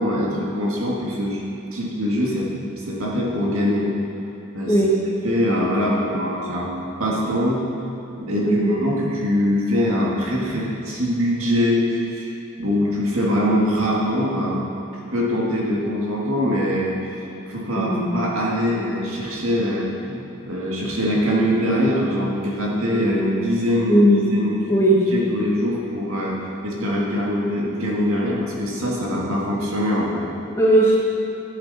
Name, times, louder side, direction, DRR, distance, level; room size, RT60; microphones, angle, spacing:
voice 1, 0.0-1.4 1.7-2.5 2.8-3.9 4.5-4.8 5.2-6.7 7.0-7.6 8.2-14.6 15.1-17.2 17.5-24.0 24.3-24.7 25.1-30.2, equal, 85° right, -4 dB, 2.0 m, -23 dB
voice 2, 8.4-8.7 17.7-18.1 23.9-24.3 24.7-25.0 28.2-28.3 30.5-31.0, right 1 dB, 15° left, -6 dB, 1.7 m, -17 dB
13.0 x 8.2 x 4.2 m, 2.8 s
head